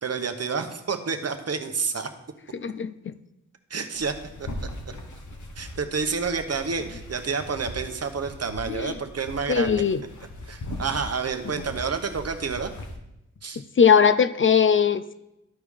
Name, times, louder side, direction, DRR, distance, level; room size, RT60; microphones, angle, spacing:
voice 1, 0.0-2.1 3.7-4.5 5.6-9.8 10.5-12.7 13.4-13.6, right 5 dB, 55° right, 7 dB, 0.9 m, -29 dB
voice 2, 2.5-3.1 8.7-8.9 9.5-10.0 13.8-15.1, left 7 dB, 45° left, 13 dB, 0.4 m, -20 dB
sound 1, 3.9-13.0, left 1 dB, 70° left, 1.2 m, -39 dB
12.5 x 4.7 x 3.5 m, 0.88 s
cardioid pair, 50°, 30 cm